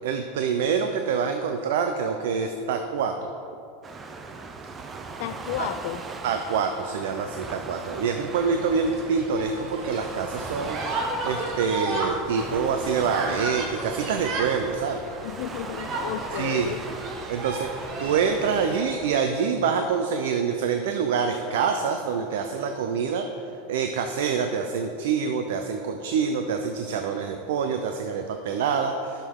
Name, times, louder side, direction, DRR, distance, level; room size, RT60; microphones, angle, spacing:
voice 1, 0.0-3.3 5.6-5.7 6.2-10.8 11.2-15.0 16.4-16.7 17.3-23.3 23.7-29.3, right 6 dB, 80° right, 5 dB, 0.5 m, -26 dB
Waves surf, 3.8-18.7, right 4 dB, 15° right, 0.4 m, -39 dB
voice 2, 5.2-6.0 15.2-16.8, left 12 dB, 60° left, 14 dB, 0.3 m, -33 dB
sound 1, 8.3-19.1, right 2 dB, 35° right, 1.3 m, -34 dB
11.0 x 6.6 x 3.7 m, 2.7 s
supercardioid pair, 160°, 0 cm